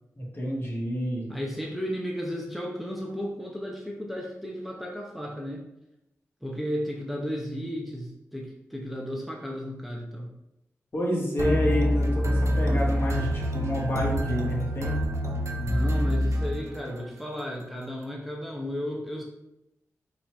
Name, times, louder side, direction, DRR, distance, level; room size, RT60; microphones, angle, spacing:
voice 1, 0.2-1.2 10.9-14.9, equal, 45° left, -3 dB, 1.5 m, -28 dB
voice 2, 1.3-5.7 6.4-10.4 15.5-19.2, equal, ahead, -2 dB, 0.9 m, -34 dB
sound 1, 11.4-17.1, equal, 60° right, 0.6 m, -26 dB
4.0 x 2.9 x 4.6 m, 0.88 s
cardioid pair, 55°, 6 cm